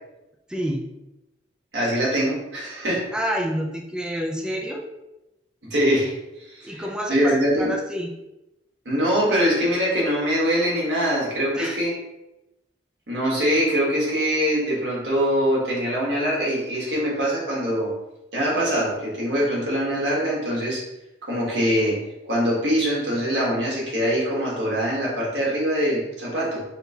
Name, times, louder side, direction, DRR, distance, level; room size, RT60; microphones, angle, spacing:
voice 1, 0.5-0.9 3.1-4.9 6.6-8.1 11.5-11.8, equal, 5° right, 0 dB, 0.3 m, -28 dB
voice 2, 1.7-3.1 5.7-6.8 7.1-7.7 8.8-11.9 13.1-17.9 18.3-20.8 21.2-22.0 22.3-26.6, equal, 80° right, -5 dB, 1.4 m, -23 dB
5.7 x 2.3 x 2.8 m, 0.96 s
head